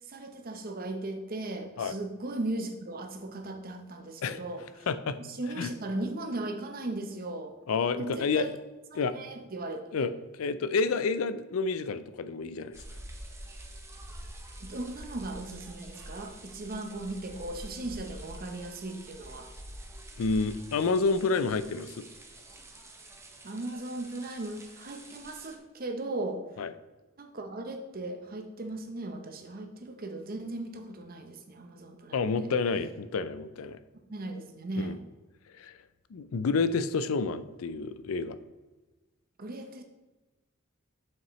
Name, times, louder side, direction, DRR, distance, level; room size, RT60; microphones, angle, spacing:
voice 1, 0.0-4.9 5.2-7.6 8.0-8.5 8.9-10.1 14.6-19.5 23.4-26.4 27.2-32.5 34.1-35.0 39.4-39.8, right 2 dB, 45° right, 5 dB, 0.8 m, -37 dB
voice 2, 4.9-5.2 5.6-5.7 7.7-8.5 8.9-9.1 9.9-10.1 10.4-12.8 20.2-22.0 26.6-26.7 32.1-33.8 34.8-35.0 35.6-35.8 36.1-38.4, left 4 dB, 85° left, 13 dB, 0.4 m, -29 dB
sound 1, 12.7-25.6, right 1 dB, 15° right, 0.7 m, -46 dB
7.3 x 5.7 x 3.1 m, 1.2 s
head